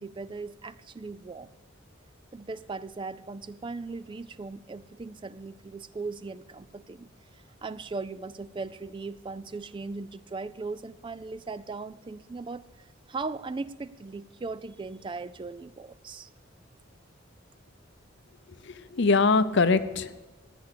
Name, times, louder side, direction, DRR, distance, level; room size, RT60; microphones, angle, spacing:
voice 1, 0.0-1.5 2.3-7.1 7.6-16.3, right 3 dB, 25° right, 15 dB, 0.3 m, -38 dB
voice 2, 18.7-20.2, left 4 dB, 60° left, 13 dB, 0.7 m, -23 dB
16.0 x 9.4 x 6.7 m, 1.2 s
head